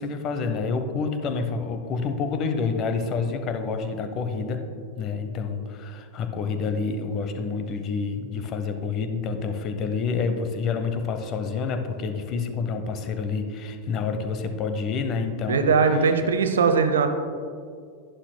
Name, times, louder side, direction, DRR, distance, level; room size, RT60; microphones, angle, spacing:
voice 1, 0.0-4.6 5.0-15.7, left 5 dB, 35° left, 7 dB, 0.7 m, -28 dB
voice 2, 15.5-17.1, right 5 dB, 65° right, 7 dB, 0.6 m, -20 dB
11.5 x 9.0 x 2.2 m, 2.2 s
figure-of-eight pair, 90°, 0 cm